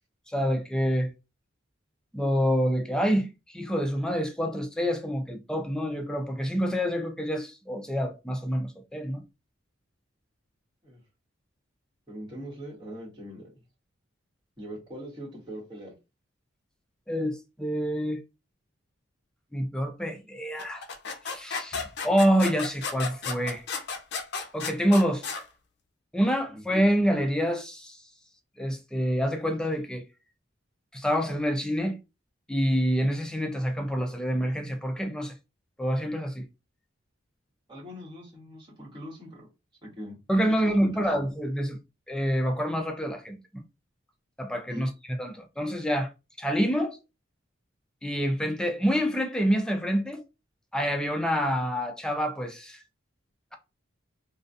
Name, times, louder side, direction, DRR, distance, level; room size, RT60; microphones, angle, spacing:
voice 1, 0.3-1.1 2.1-9.2 17.1-18.2 19.5-20.8 21.2-23.7 24.5-25.2 26.1-28.0 28.6-30.0 30.9-32.0 32.5-35.3 35.8-36.5 40.3-41.8 42.1-43.6 44.4-44.9 45.2-46.1 46.4-47.0 48.0-50.2 50.7-52.8, equal, 5° left, 0.4 m, -27 dB
voice 2, 12.1-13.5 14.6-15.9 26.5-26.6 37.7-39.5 39.8-40.2 40.5-40.6 40.8-40.9 44.7-44.9 45.8-45.9, equal, 25° right, 1.2 m, -41 dB
sound 1, 20.6-25.4, left 5 dB, 60° left, 0.5 m, -33 dB
2.3 x 2.3 x 2.6 m
head